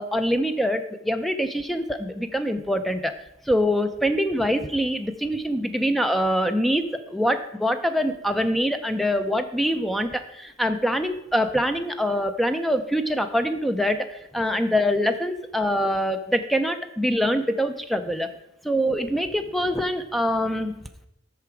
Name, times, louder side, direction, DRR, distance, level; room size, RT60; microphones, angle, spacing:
voice 1, 0.0-3.1 3.5-14.1 14.3-18.3 18.6-20.8, equal, ahead, 8 dB, 0.5 m, -24 dB
8.4 x 5.9 x 4.5 m, 0.79 s
head